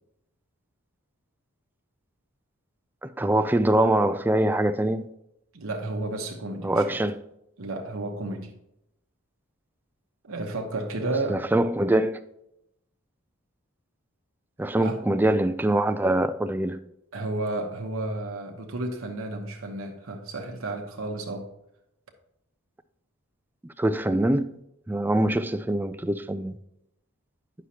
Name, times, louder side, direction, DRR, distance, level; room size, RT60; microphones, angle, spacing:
voice 1, 3.0-5.1 6.6-7.2 11.3-12.2 14.6-16.8 23.8-24.5 24.9-26.5, right 1 dB, 10° right, 0.3 m, -23 dB
voice 2, 5.5-7.0 7.6-8.5 10.2-11.5 14.8-15.0 17.1-21.5, right 2 dB, 70° right, 1.0 m, -32 dB
9.9 x 6.2 x 2.8 m
head